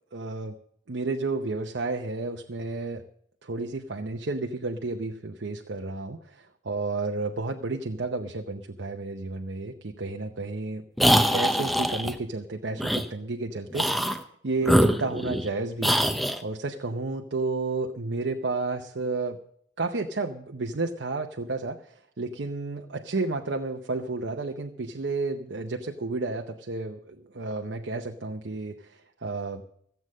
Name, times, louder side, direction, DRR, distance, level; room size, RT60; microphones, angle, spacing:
voice 1, 0.1-0.5 0.9-3.0 3.4-10.9 11.3-16.0 16.4-19.4 19.8-29.6, right 3 dB, 70° right, 4 dB, 0.8 m, -32 dB
sound 1, 11.0-12.1 12.8-13.1 13.7-14.2 14.6-15.5 15.8-16.4, equal, ahead, 0.7 m, -23 dB
15.5 x 7.9 x 6.4 m, 0.68 s
head